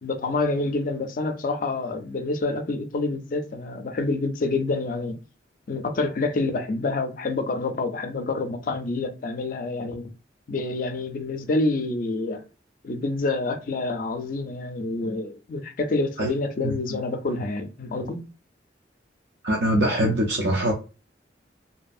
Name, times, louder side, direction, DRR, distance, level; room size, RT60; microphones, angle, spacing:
voice 1, 0.0-5.2 5.7-10.1 10.5-12.4 12.8-18.3, left 3 dB, 50° left, 0.4 m, -27 dB
voice 2, 19.4-20.7, right 1 dB, 65° right, 0.5 m, -22 dB
2.7 x 2.3 x 2.5 m
head